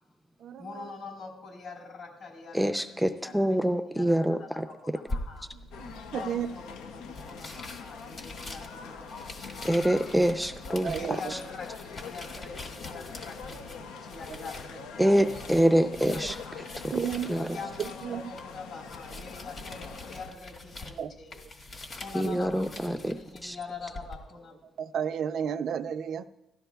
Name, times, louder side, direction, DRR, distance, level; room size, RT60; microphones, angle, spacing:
voice 1, 0.6-3.6 3.9-5.5 6.1-10.2 10.9-15.7 16.0-16.6 17.5-21.3 21.9-24.6, left 4 dB, 65° left, 0 dB, 4.0 m, -44 dB
voice 2, 2.5-4.7 9.6-11.4 15.0-17.6 22.1-23.6, equal, ahead, 8 dB, 0.5 m, -26 dB
sound 1, 5.1-24.2, left 2 dB, 45° left, 1.6 m, -44 dB
sound 2, 5.7-20.3, left 6 dB, 90° left, 0.6 m, -44 dB
voice 3, 5.8-6.5 10.8-11.2 16.9-17.3 18.0-18.2 21.0-21.1 22.3-22.4 24.8-26.3, right 8 dB, 70° right, 11 dB, 0.5 m, -32 dB
16.5 x 13.0 x 2.3 m, 0.91 s
cardioid pair, 90°, 0 cm